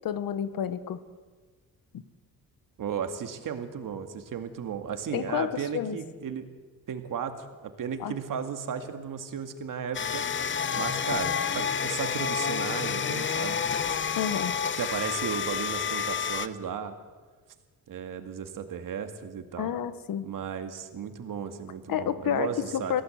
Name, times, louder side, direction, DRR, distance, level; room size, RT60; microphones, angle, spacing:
voice 1, 0.0-1.0 5.1-6.0 8.0-8.1 14.2-14.5 19.6-20.3 21.9-23.0, left 9 dB, 65° left, 14 dB, 1.2 m, -30 dB
voice 2, 2.8-6.4 6.9-10.2 10.8-13.6 14.8-16.9 17.9-19.7 20.2-23.0, right 7 dB, 60° right, 7 dB, 2.1 m, -35 dB
sound 1, 9.9-16.5, left 7 dB, 30° left, 0.8 m, -29 dB
23.0 x 16.5 x 7.9 m, 1.4 s
cardioid pair, 135°, 37 cm